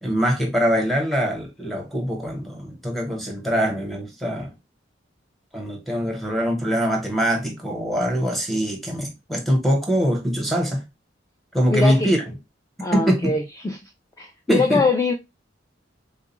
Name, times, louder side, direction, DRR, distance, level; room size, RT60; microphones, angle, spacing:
voice 1, 0.0-4.5 5.5-10.8 11.5-12.2 12.9-13.4 14.5-14.8, equal, ahead, 1.0 m, -23 dB
voice 2, 11.7-12.1 12.8-13.8 14.2-15.1, left 3 dB, 15° left, 0.4 m, -22 dB
3.7 x 2.3 x 2.9 m
head